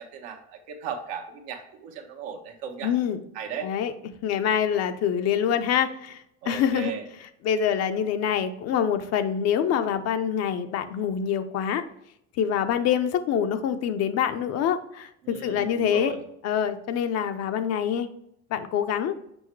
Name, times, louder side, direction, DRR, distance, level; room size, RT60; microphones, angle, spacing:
voice 1, 0.0-2.9 3.3-3.7 6.4-7.0 15.2-16.2, right 7 dB, 85° right, 3 dB, 1.2 m, -36 dB
voice 2, 2.8-3.2 3.6-3.9 4.2-6.9 7.4-11.8 12.4-16.2 16.4-18.1 18.5-19.2, left 8 dB, 55° left, 9 dB, 0.7 m, -25 dB
6.2 x 5.0 x 3.2 m, 0.76 s
supercardioid pair, 110°, 30 cm